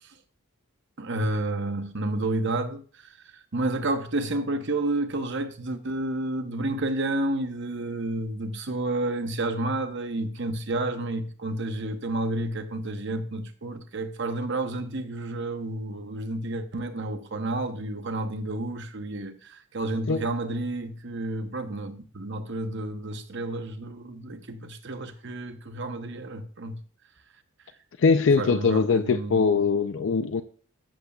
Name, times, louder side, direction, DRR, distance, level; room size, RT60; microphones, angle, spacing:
voice 1, 1.0-2.8 3.5-26.8 28.4-29.5, right 2 dB, 55° right, 0.9 m, -30 dB
voice 2, 28.0-30.4, left 5 dB, 60° left, 0.4 m, -22 dB
14.0 x 6.8 x 2.4 m
head